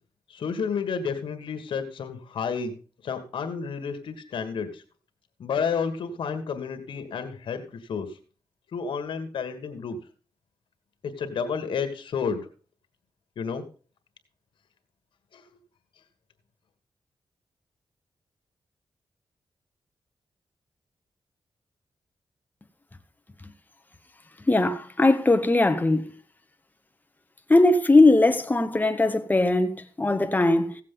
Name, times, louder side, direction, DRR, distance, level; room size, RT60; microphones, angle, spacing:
voice 1, 0.3-2.8 3.0-4.8 5.4-7.6 7.9-8.1 8.7-10.0 11.0-12.4 13.4-13.7 15.3-15.4, left 6 dB, 90° left, 1.6 m, -30 dB
voice 2, 24.5-26.1 27.5-30.8, left 2 dB, 20° left, 1.2 m, -20 dB
16.0 x 7.5 x 3.8 m
cardioid pair, 70°, 8 cm